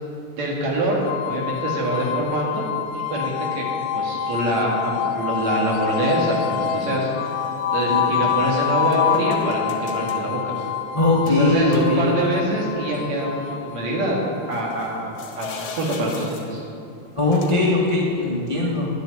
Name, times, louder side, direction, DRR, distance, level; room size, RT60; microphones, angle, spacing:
voice 1, 0.4-2.7 2.9-3.6 3.9-7.1 7.7-10.5 11.3-14.2 14.5-15.5 15.7-16.6, right 1 dB, 65° right, -2 dB, 3.4 m, -25 dB
sound 1, 1.0-16.0, left 9 dB, 85° left, 1.3 m, -27 dB
sound 2, 6.4-6.8 7.3-8.4 8.9-10.3 11.3-12.3 12.7-12.8 14.5-16.7 17.3-17.7, left 5 dB, 55° left, 1.8 m, -40 dB
voice 2, 10.9-12.1 17.1-18.9, left 2 dB, 20° left, -3 dB, 0.8 m, -20 dB
10.5 x 8.2 x 9.7 m, 2.6 s
omnidirectional pair, 3.5 m